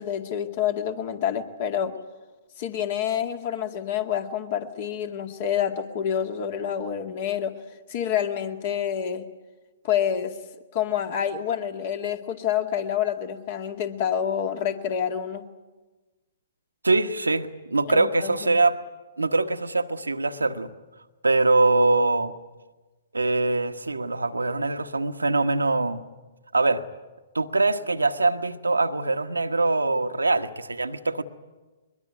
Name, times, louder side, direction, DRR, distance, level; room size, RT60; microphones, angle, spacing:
voice 1, 0.0-1.9 2.6-7.5 7.9-9.3 9.8-10.4 10.7-15.4 17.9-18.6, left 9 dB, 45° left, 7 dB, 2.1 m, -28 dB
voice 2, 16.8-18.8 19.2-20.7 21.2-22.3 23.1-26.0 26.5-26.8 27.3-31.2, right 3 dB, 80° right, 8 dB, 1.2 m, -23 dB
22.0 x 22.0 x 9.5 m, 1.2 s
figure-of-eight pair, 120°, 0 cm